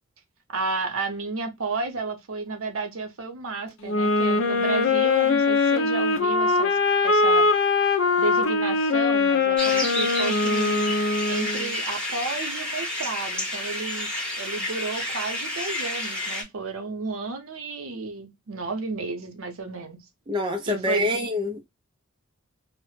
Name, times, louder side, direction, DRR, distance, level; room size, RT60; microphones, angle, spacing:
voice 1, 0.5-6.8 7.0-7.5 8.2-10.9 11.3-14.1 14.4-20.0 20.7-21.1, right 3 dB, 75° right, 0.7 m, -32 dB
sound 1, 3.8-11.7, left 3 dB, 65° left, 0.5 m, -22 dB
sound 2, 9.6-16.4, left 1 dB, 5° left, 0.8 m, -30 dB
voice 2, 20.3-21.7, left 1 dB, 25° right, 0.4 m, -26 dB
2.0 x 2.0 x 3.1 m
head